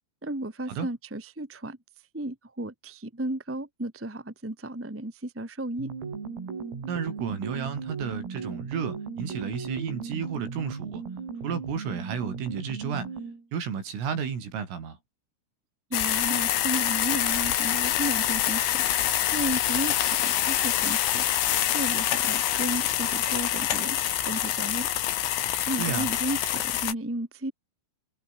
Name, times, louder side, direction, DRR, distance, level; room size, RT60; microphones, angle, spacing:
voice 1, 0.2-1.8 2.1-5.9 15.9-24.0 24.2-24.9 25.6-27.5, right 1 dB, 5° right, 1.1 m, -34 dB
sound 1, 5.8-13.5, right 5 dB, 90° right, 10.5 m, -36 dB
voice 2, 6.9-11.0 11.4-13.1 13.5-15.0 25.8-26.1, right 7 dB, 70° right, 7.6 m, -32 dB
sound 2, 15.9-26.9, left 12 dB, 85° left, 5.2 m, -26 dB
omnidirectional pair, 6.0 m